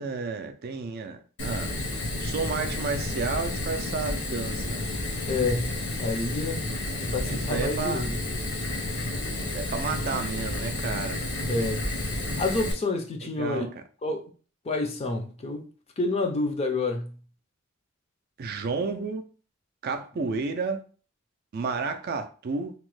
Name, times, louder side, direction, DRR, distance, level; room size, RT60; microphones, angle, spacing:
voice 1, 0.0-1.7 2.2-4.8 7.1-8.1 9.5-11.2 13.2-13.7 18.4-19.2 19.8-20.8 21.5-22.7, right 4 dB, 45° right, 0.3 m, -31 dB
Fire, 1.4-12.7, left 2 dB, 60° left, 0.7 m, -31 dB
voice 2, 5.3-6.6 7.0-8.2 11.5-11.8 12.4-13.7 14.0-14.2 14.7-15.6 16.0-17.1, left 3 dB, 30° left, 0.4 m, -28 dB
2.9 x 2.1 x 3.1 m
head